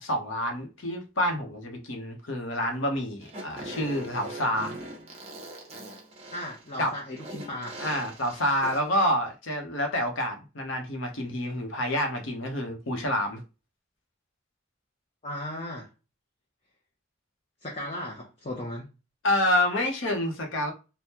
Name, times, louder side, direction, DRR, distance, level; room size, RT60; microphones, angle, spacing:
voice 1, 0.0-4.7 6.8-6.9 7.8-13.4 19.2-20.7, left 1 dB, 80° left, 0.8 m, -28 dB
Fart, 3.2-9.0, right 1 dB, 30° right, 0.7 m, -41 dB
voice 2, 6.3-7.8 15.2-15.9 17.6-18.9, left 1 dB, 30° left, 0.6 m, -36 dB
3.5 x 2.1 x 2.8 m
head